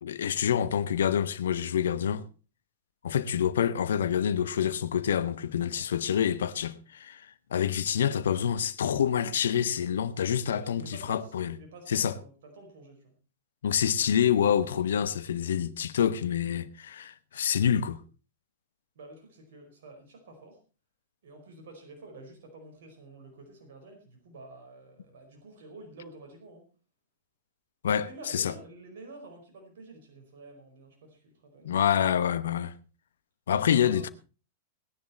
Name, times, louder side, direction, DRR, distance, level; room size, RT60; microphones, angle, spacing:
voice 1, 0.0-2.2 3.0-11.5 11.9-12.1 13.6-18.0 27.8-28.5 31.6-32.7 33.5-34.1, left 8 dB, 70° left, 1.1 m, -27 dB
voice 2, 10.5-13.1 18.9-20.6 21.2-26.6 27.8-31.7 33.7-34.1, right 2 dB, 65° right, 4.9 m, -49 dB
19.0 x 10.5 x 4.3 m
hypercardioid pair, 100°, 0 cm